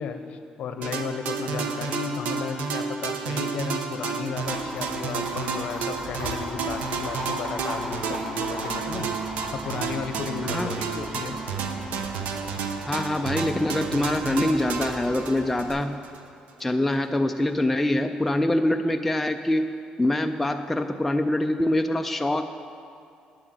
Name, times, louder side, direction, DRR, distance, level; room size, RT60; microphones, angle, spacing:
voice 1, 0.0-9.1 9.5-11.4, left 5 dB, 55° left, 7 dB, 0.8 m, -34 dB
sound 1, 0.8-16.2, right 5 dB, 75° right, 0.8 m, -31 dB
Livestock farm animals working animals, 4.4-15.7, equal, 45° right, 3.0 m, -39 dB
voice 2, 12.9-16.0 16.6-19.7 20.0-22.5, left 1 dB, 5° left, 5 dB, 0.3 m, -24 dB
9.6 x 7.7 x 7.7 m, 2.5 s
cardioid pair, 155°, 3 cm